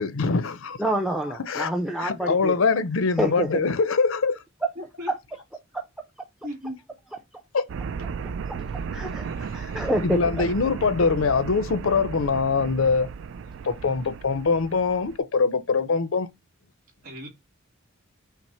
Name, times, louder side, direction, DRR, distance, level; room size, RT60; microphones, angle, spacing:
voice 1, 0.0-0.8 1.5-1.7 2.0-4.4 7.5-7.6 10.0-13.1 13.6-16.3, left 4 dB, 75° left, 0.6 m, -23 dB
voice 2, 0.8-2.5 3.2-3.5 5.7-5.9 8.9-10.5, right 1 dB, 5° right, 0.5 m, -27 dB
voice 3, 4.8-5.1 6.4-6.8 17.0-17.3, equal, 40° right, 2.3 m, -36 dB
sound 1, 7.7-15.2, right 5 dB, 65° right, 0.3 m, -35 dB
5.9 x 2.0 x 4.2 m
head